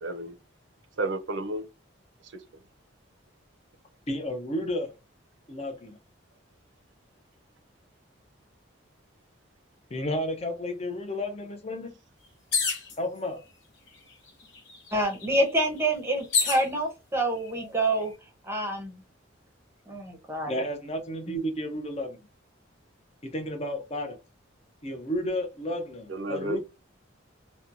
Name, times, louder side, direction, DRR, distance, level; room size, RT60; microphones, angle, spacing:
voice 1, 0.0-0.4 1.0-1.6 26.1-26.6, right 2 dB, 60° right, 0.5 m, -31 dB
voice 2, 4.1-4.9 5.5-6.0 9.9-12.0 13.0-13.4 20.5-22.2 23.2-24.2 24.8-26.6, left 1 dB, 30° left, 0.5 m, -32 dB
sound 1, 12.5-13.0 13.9-14.0 14.3-16.7 17.5-18.0, left 5 dB, 60° left, 0.9 m, -29 dB
voice 3, 14.9-18.1 18.4-18.9 19.9-20.5 21.3-21.4, right 1 dB, 10° right, 0.7 m, -27 dB
2.9 x 2.2 x 2.5 m
head